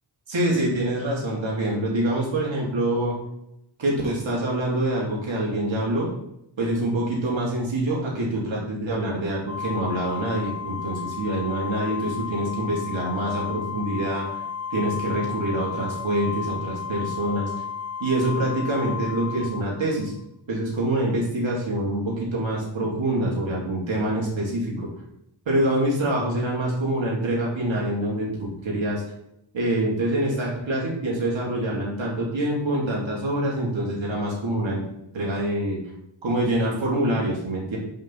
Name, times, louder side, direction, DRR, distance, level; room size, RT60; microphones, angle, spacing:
voice 1, 0.3-3.2 3.8-6.1 6.6-14.3 14.7-17.5 18.0-20.1 20.5-24.9 25.4-29.0 29.5-34.8 35.1-35.8 36.2-37.8, right 1 dB, 70° right, -3 dB, 3.3 m, -25 dB
Organ, 9.5-20.2, left 7 dB, 10° right, 0.9 m, -33 dB
5.7 x 5.4 x 5.7 m, 0.80 s
cardioid pair, 55°, 48 cm